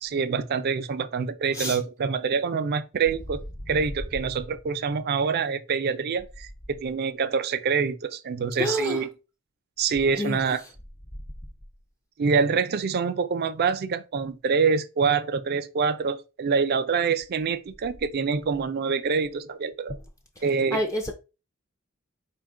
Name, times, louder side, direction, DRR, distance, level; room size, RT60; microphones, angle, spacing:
voice 1, 0.0-9.1 9.8-10.6 12.2-19.9 20.4-20.8, right 5 dB, 50° right, 0.4 m, -26 dB
voice 2, 8.6-9.0 10.2-10.4 20.7-21.1, left 1 dB, 15° left, 0.4 m, -28 dB
4.3 x 2.3 x 3.6 m
head